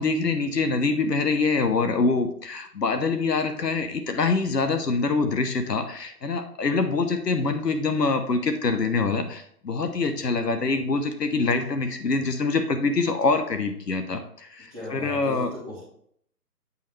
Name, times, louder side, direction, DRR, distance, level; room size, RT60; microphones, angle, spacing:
voice 1, 0.0-15.5, left 4 dB, 85° left, 7 dB, 1.1 m, -25 dB
voice 2, 14.7-15.8, left 1 dB, 10° left, -9 dB, 2.6 m, -37 dB
8.4 x 5.4 x 3.2 m, 0.65 s
figure-of-eight pair, 165°, 48 cm